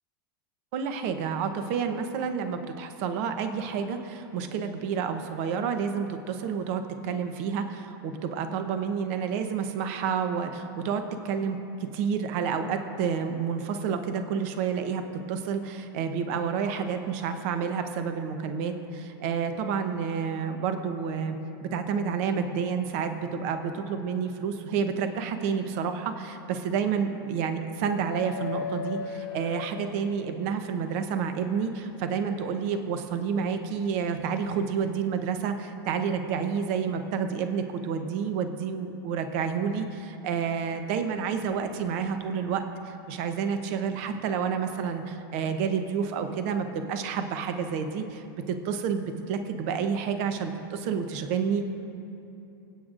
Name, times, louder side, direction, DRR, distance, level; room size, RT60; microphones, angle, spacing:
voice 1, 0.7-15.0 15.3-21.4 21.6-51.6, right 6 dB, 35° right, 7 dB, 0.8 m, -29 dB
sound 1, 28.1-30.5 32.2-32.3 34.0-34.2, left 7 dB, 80° left, 0.9 m, -36 dB
26.5 x 8.9 x 2.5 m, 2.9 s
supercardioid pair, 175°, 13 cm